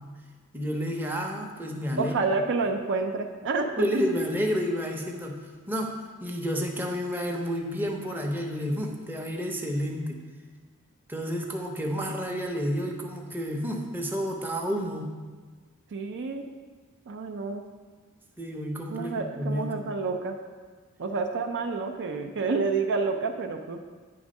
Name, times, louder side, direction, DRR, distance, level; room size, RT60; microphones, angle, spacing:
voice 1, 0.5-2.1 3.8-5.4 5.7-5.9 6.2-10.2 11.1-15.1 18.4-19.7, equal, 10° right, 1 dB, 0.6 m, -30 dB
voice 2, 2.0-4.0 15.9-16.4 17.1-17.6 18.9-20.4 21.0-23.8, right 4 dB, 55° right, 4 dB, 0.5 m, -29 dB
8.5 x 3.5 x 5.2 m, 1.4 s
head